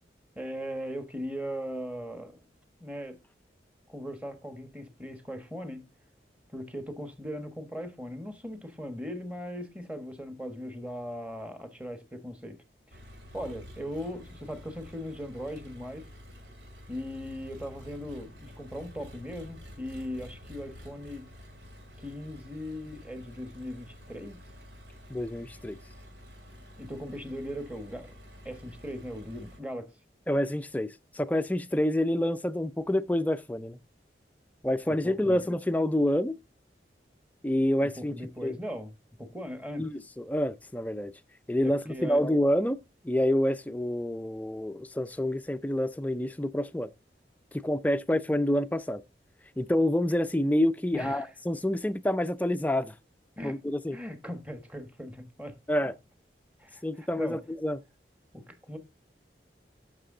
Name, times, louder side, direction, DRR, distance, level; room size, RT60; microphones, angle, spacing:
voice 1, 0.3-2.4 2.8-3.2 3.9-5.8 6.5-12.6 12.9-13.0 13.3-16.1 16.9-21.3 22.0-24.4 26.8-28.1 28.4-29.9 34.9-35.4 37.8-38.9 39.2-39.9 41.6-42.2 50.9-51.3 53.4-53.6 53.9-55.5 56.6-57.4 58.3-58.8, equal, 5° right, 1.2 m, -39 dB
Engine, 12.9-29.6, left 1 dB, 85° right, 2.7 m, -49 dB
voice 2, 25.1-25.8 30.3-33.8 34.6-36.4 37.4-38.1 38.4-38.5 39.8-41.1 41.5-42.8 43.0-46.9 47.5-49.0 49.6-52.9 53.4-54.0 55.7-55.9 56.8-57.8, left 1 dB, 10° left, 0.4 m, -28 dB
12.5 x 6.0 x 3.7 m
head